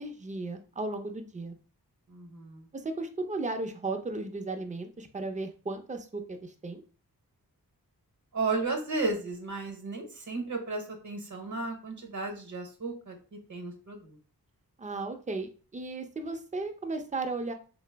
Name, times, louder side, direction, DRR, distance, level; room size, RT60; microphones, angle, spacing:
voice 1, 0.0-1.5 2.7-6.8 14.8-17.5, right 3 dB, 20° right, 5 dB, 0.5 m, -35 dB
voice 2, 2.1-2.7 8.3-14.2, right 3 dB, 50° right, 4 dB, 0.9 m, -34 dB
3.1 x 2.0 x 3.3 m, 0.38 s
cardioid pair, 45°, 38 cm